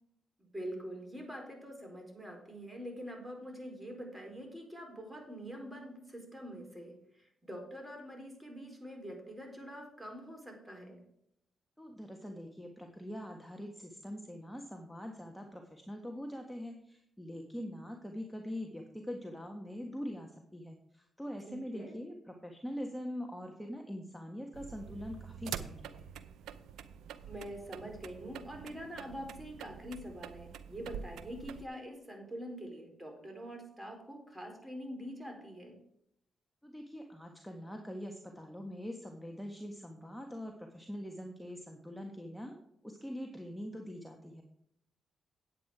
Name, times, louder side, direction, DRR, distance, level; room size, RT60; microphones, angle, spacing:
voice 1, 0.4-11.0 21.5-22.0 27.3-35.8, equal, 15° right, 2 dB, 4.3 m, -45 dB
voice 2, 11.8-26.1 36.6-42.6 42.8-44.4, equal, 5° left, 2 dB, 1.6 m, -43 dB
sound 1, 24.5-31.7, right 8 dB, 85° right, 0.6 m, -46 dB
9.5 x 8.4 x 4.8 m, 0.76 s
supercardioid pair, 55°, 0 cm